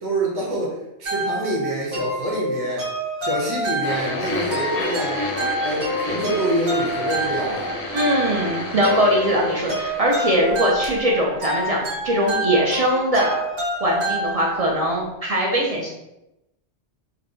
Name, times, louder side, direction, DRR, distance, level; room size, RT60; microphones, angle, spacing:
voice 1, 0.0-2.9 3.2-5.2 5.6-7.7, right 1 dB, 25° right, -5 dB, 0.8 m, -26 dB
sound 1, 1.1-14.9, right 1 dB, 85° right, 1.5 m, -28 dB
sound 2, 3.8-10.5 10.8-11.0 11.7-11.8, left 2 dB, 80° left, 0.9 m, -30 dB
voice 2, 7.9-13.4 13.8-15.9, equal, 50° right, -2 dB, 0.4 m, -21 dB
4.0 x 2.2 x 2.6 m, 0.90 s
omnidirectional pair, 1.2 m